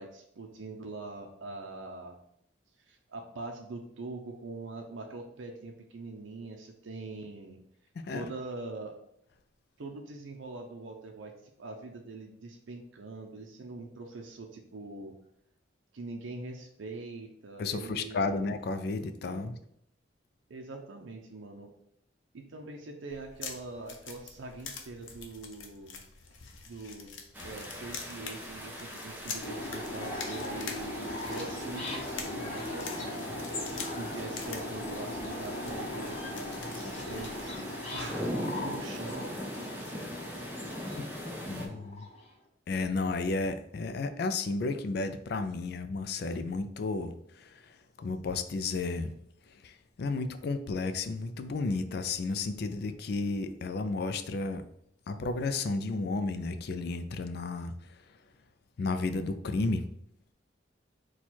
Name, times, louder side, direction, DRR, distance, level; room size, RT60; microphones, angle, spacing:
voice 1, 0.0-2.2 2.9-7.6 8.1-9.0 9.8-11.3 11.6-15.2 15.9-18.3 19.2-19.6 20.5-21.7 22.3-26.0 26.6-27.1 27.4-37.4 37.9-39.4, right 3 dB, 85° right, 2 dB, 0.5 m, -43 dB
voice 2, 17.6-19.6 41.5-42.1 42.7-47.6 48.0-49.1 49.6-54.6 55.1-57.7 58.8-59.9, left 3 dB, 55° left, 10 dB, 0.3 m, -32 dB
sound 1, 23.1-37.6, left 5 dB, 90° left, 0.6 m, -46 dB
sound 2, 27.3-41.7, equal, 10° right, 0.6 m, -41 dB
sound 3, 29.4-42.3, left 1 dB, 35° left, 0.8 m, -39 dB
4.4 x 2.3 x 4.3 m, 0.71 s
head